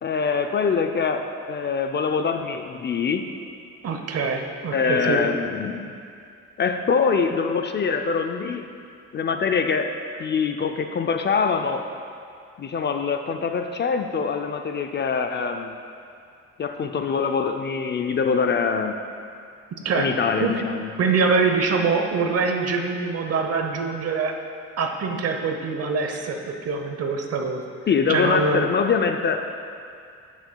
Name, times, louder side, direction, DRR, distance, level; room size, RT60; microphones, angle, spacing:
voice 1, 0.0-3.3 4.7-5.9 6.6-8.7 9.1-11.9 12.6-15.7 16.6-19.0 20.0-20.9 27.9-29.5, left 5 dB, 35° left, 6 dB, 0.4 m, -24 dB
voice 2, 3.8-5.2 19.8-20.1 20.4-20.6 21.0-24.3 24.8-27.6 28.1-28.7, right 4 dB, 55° right, 4 dB, 0.8 m, -24 dB
12.5 x 6.2 x 2.3 m, 2.4 s
cardioid pair, 90°, 30 cm